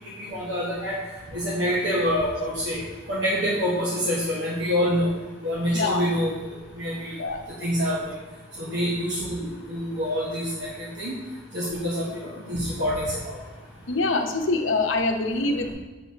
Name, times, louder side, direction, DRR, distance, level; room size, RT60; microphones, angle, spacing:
voice 1, 0.3-0.9 1.3-2.8 3.1-5.1 5.4-6.3 6.8-7.1 7.6-8.1 8.6-9.4 9.7-10.4 11.0-11.2 11.5-13.4, equal, 60° right, -6 dB, 1.3 m, -26 dB
voice 2, 5.7-6.1 7.2-7.4 13.9-15.7, left 3 dB, 75° left, 4 dB, 0.8 m, -24 dB
8.2 x 6.6 x 2.9 m, 1.2 s
head